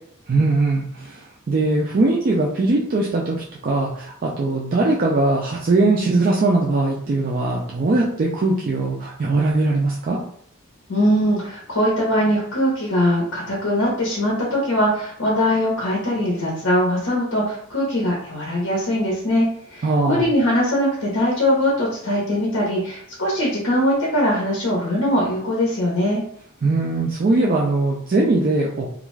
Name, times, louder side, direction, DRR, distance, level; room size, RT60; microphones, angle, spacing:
voice 1, 0.3-10.2 19.8-20.2 26.6-28.9, right 2 dB, 40° right, -2 dB, 0.3 m, -20 dB
voice 2, 10.9-26.2, equal, 75° left, -4 dB, 0.8 m, -21 dB
2.4 x 2.2 x 3.1 m, 0.64 s
head